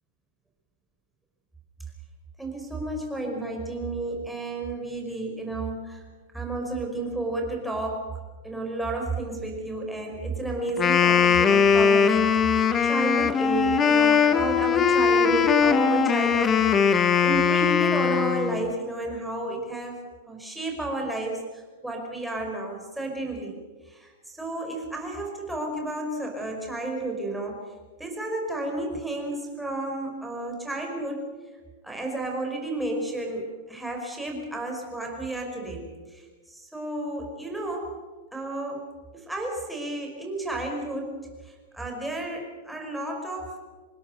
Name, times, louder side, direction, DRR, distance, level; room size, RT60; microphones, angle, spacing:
voice 1, 2.4-6.0 6.3-8.1 8.4-16.6 16.9-23.6 23.9-27.7 28.0-31.3 31.8-37.9 38.3-38.9 39.1-41.1 41.4-43.6, right 2 dB, ahead, 0 dB, 5.3 m, -32 dB
Wind instrument woodwind instrument, 10.7-18.7, left 6 dB, 20° left, 1.4 m, -20 dB
26.0 x 20.0 x 6.8 m, 1.4 s
supercardioid pair, 150°, 0 cm